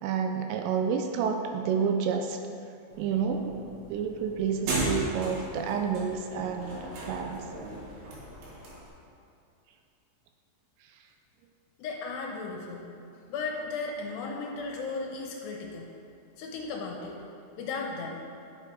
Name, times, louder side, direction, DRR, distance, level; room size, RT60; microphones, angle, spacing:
voice 1, 0.0-2.4 3.0-7.5, right 6 dB, 80° right, 5 dB, 2.6 m, -29 dB
sound 1, 2.9-8.9, right 2 dB, 65° right, 3.3 m, -36 dB
voice 2, 11.8-12.9 13.3-15.9 16.4-17.2 17.6-18.2, left 4 dB, 75° left, 0 dB, 2.9 m, -35 dB
11.0 x 7.4 x 4.7 m, 2.5 s
omnidirectional pair, 5.2 m